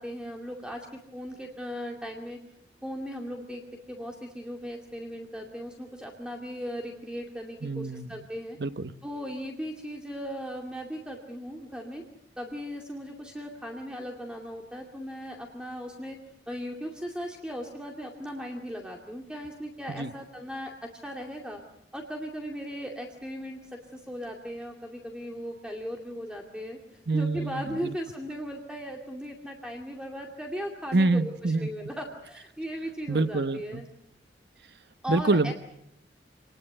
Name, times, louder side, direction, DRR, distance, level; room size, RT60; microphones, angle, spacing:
voice 1, 0.0-2.4 2.8-8.6 9.0-12.0 12.4-16.2 16.5-21.6 21.9-33.9 35.0-35.5, equal, 5° right, 2.3 m, -37 dB
voice 2, 7.6-8.2 8.6-8.9 19.9-20.1 27.1-27.9 30.9-31.7 33.1-33.8 35.1-35.5, right 3 dB, 65° right, 1.0 m, -26 dB
27.0 x 20.0 x 7.9 m
head